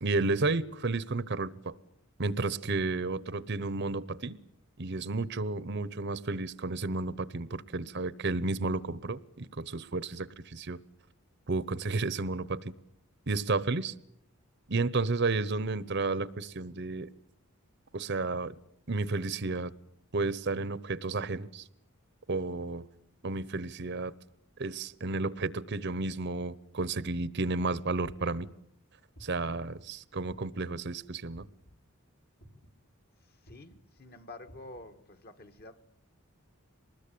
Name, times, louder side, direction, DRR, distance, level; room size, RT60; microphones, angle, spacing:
voice 1, 0.0-1.7 2.2-4.4 4.8-10.8 11.5-12.7 13.3-13.9 14.7-17.1 17.9-18.6 18.9-19.7 20.1-21.7 22.3-22.8 23.2-24.1 24.6-28.5 29.2-31.4, right 3 dB, 50° right, 19 dB, 0.9 m, -32 dB
sound 1, 28.0-28.5 29.1-29.6 30.3-30.7 31.3-31.7 32.4-32.8 33.4-33.8 34.5-34.8, equal, 70° left, 3.4 m, -53 dB
voice 2, 33.2-35.8, left 2 dB, 45° left, 9 dB, 1.7 m, -49 dB
24.5 x 20.5 x 8.5 m, 0.74 s
head